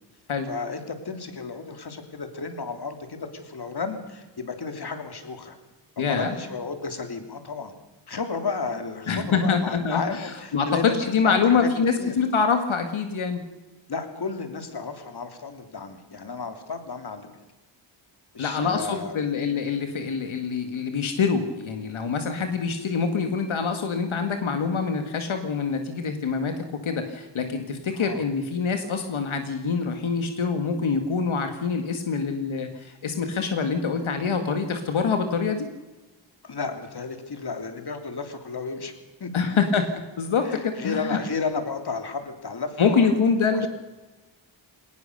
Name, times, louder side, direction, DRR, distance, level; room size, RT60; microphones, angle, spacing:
voice 1, 0.5-5.6 6.0-7.7 8.1-11.7 12.0-12.1 13.9-17.3 18.3-19.3 27.9-28.2 36.4-38.9 39.2-39.3 40.4-43.1 43.5-43.7, left 4 dB, 55° left, 7 dB, 3.2 m, -33 dB
voice 2, 6.0-6.3 9.1-13.4 18.4-35.7 39.3-39.9 40.2-41.2 42.8-43.7, left 5 dB, 85° left, 6 dB, 2.1 m, -25 dB
21.5 x 19.0 x 6.8 m, 1.2 s
wide cardioid pair, 85°, 47 cm